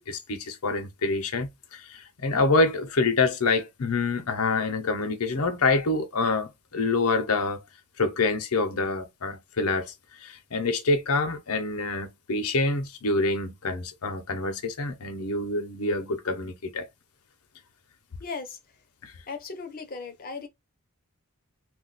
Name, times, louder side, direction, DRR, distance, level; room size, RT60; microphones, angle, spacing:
voice 1, 0.1-7.6 8.0-9.9 10.2-16.9 19.0-19.1, left 3 dB, 80° left, 0.8 m, -26 dB
voice 2, 18.2-18.6 19.3-20.5, left 4 dB, 40° left, 0.7 m, -37 dB
2.5 x 2.2 x 3.9 m
head